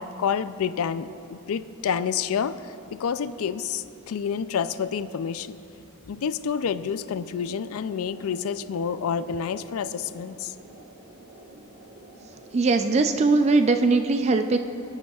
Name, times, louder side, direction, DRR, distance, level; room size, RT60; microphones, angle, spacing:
voice 1, 0.0-5.6 6.1-10.5, left 7 dB, 70° left, 13 dB, 0.4 m, -29 dB
sound 1, 7.7-13.1, right 1 dB, 75° right, 1.2 m, -49 dB
voice 2, 12.5-14.6, right 3 dB, 30° right, 7 dB, 0.4 m, -20 dB
23.5 x 8.9 x 2.4 m, 2.8 s
head